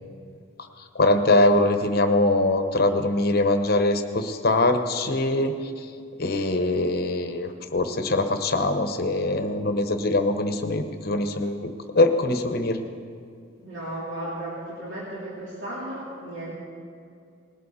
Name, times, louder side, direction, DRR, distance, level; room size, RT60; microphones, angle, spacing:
voice 1, 0.9-5.5 6.2-12.8, left 2 dB, 50° left, 7 dB, 0.9 m, -22 dB
voice 2, 13.6-16.5, right 1 dB, 65° right, -8 dB, 2.9 m, -35 dB
19.5 x 13.0 x 4.2 m, 2.4 s
head